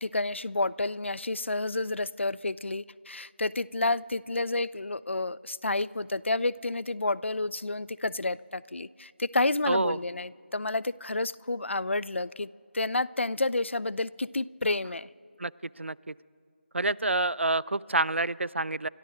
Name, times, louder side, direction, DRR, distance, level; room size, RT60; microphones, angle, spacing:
voice 1, 0.0-12.5 12.7-15.1, left 2 dB, 80° left, 20 dB, 0.4 m, -30 dB
voice 2, 9.7-10.0 15.4-15.5 15.8-16.1 16.7-18.9, right 2 dB, 90° right, 21 dB, 0.4 m, -27 dB
29.0 x 12.5 x 3.9 m, 2.3 s
figure-of-eight pair, 165°, 6 cm